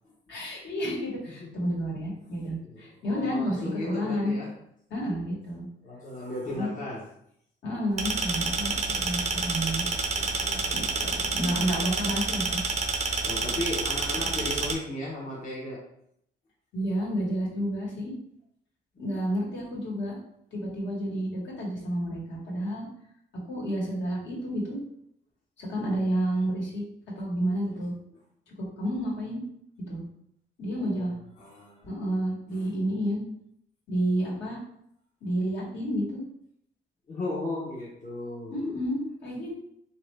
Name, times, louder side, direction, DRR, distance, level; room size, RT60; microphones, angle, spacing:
voice 1, 0.3-4.4 4.9-5.7 6.5-6.7 7.6-9.9 10.7-12.6 16.7-18.1 19.0-20.1 20.5-22.9 23.5-24.8 25.6-26.8 27.1-27.9 28.8-29.4 29.9-30.0 30.6-31.1 31.8-33.2 33.9-34.6 35.2-36.2 38.5-39.5, equal, 70° left, -4 dB, 1.5 m, -30 dB
voice 2, 1.3-1.7 2.2-4.6 5.8-7.1 8.6-11.2 13.2-15.8 25.8-26.0 30.8-31.9 32.5-32.7 37.1-38.6, left 2 dB, 40° left, -5 dB, 0.9 m, -37 dB
sound 1, 8.0-14.7, right 4 dB, 35° right, 0.5 m, -29 dB
3.2 x 2.7 x 3.2 m, 0.72 s
cardioid pair, 90°, 20 cm